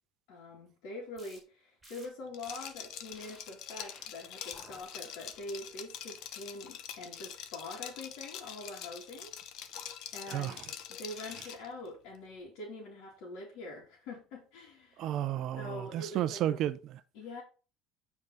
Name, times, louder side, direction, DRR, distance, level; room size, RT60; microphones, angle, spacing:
voice 1, 0.3-9.3 10.1-15.1 15.6-16.6 17.1-17.4, left 2 dB, 70° left, 3.0 m, -44 dB
sound 1, 1.2-1.4 1.8-2.1 2.5-2.7 3.1-3.4 3.8-4.1 4.5-4.8 5.3-5.7, right 1 dB, 5° right, 4.4 m, -56 dB
Liquid, 2.3-11.7, left 9 dB, 55° left, 0.9 m, -45 dB
voice 2, 10.3-10.6 15.0-17.0, right 12 dB, 50° right, 0.5 m, -33 dB
8.9 x 4.8 x 4.1 m
cardioid pair, 165°, 0 cm